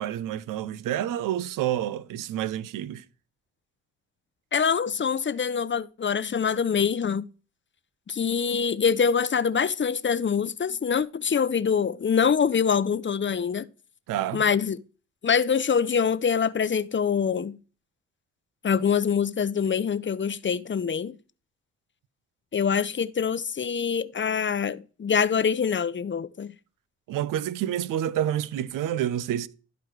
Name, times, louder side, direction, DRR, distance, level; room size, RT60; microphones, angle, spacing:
voice 1, 0.0-3.0 14.1-14.4 27.1-29.5, right 11 dB, 75° right, 0.7 m, -28 dB
voice 2, 4.5-7.2 8.1-13.7 14.3-14.8 15.2-17.6 18.6-21.2 22.5-26.5, left 6 dB, 35° left, 0.7 m, -25 dB
12.5 x 4.9 x 4.6 m
hypercardioid pair, 40°, 33 cm